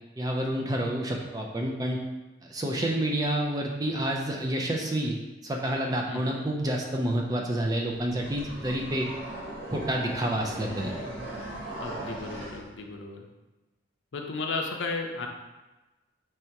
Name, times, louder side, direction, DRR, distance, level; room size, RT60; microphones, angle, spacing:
voice 1, 0.2-2.0 2.4-9.1 9.7-10.9, right 1 dB, 20° right, 0 dB, 0.4 m, -29 dB
voice 2, 6.1-6.5 11.8-13.2 14.1-15.3, left 3 dB, 70° left, 2 dB, 0.5 m, -34 dB
sound 1, 7.9-12.6, right 1 dB, 75° right, 1.5 m, -38 dB
3.3 x 2.8 x 4.6 m, 1.1 s
head